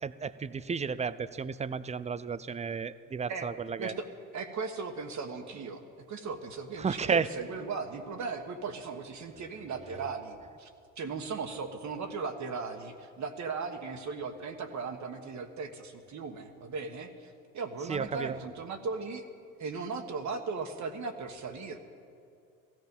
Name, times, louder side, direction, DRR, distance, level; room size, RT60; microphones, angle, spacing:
voice 1, 0.0-3.9 6.8-7.3 17.9-18.4, right 5 dB, 15° right, 16 dB, 0.5 m, -32 dB
voice 2, 4.3-10.7 11.0-19.3 19.6-21.8, right 4 dB, 45° right, 5 dB, 1.4 m, -37 dB
16.0 x 14.0 x 5.4 m, 2.4 s
hypercardioid pair, 60°, 40 cm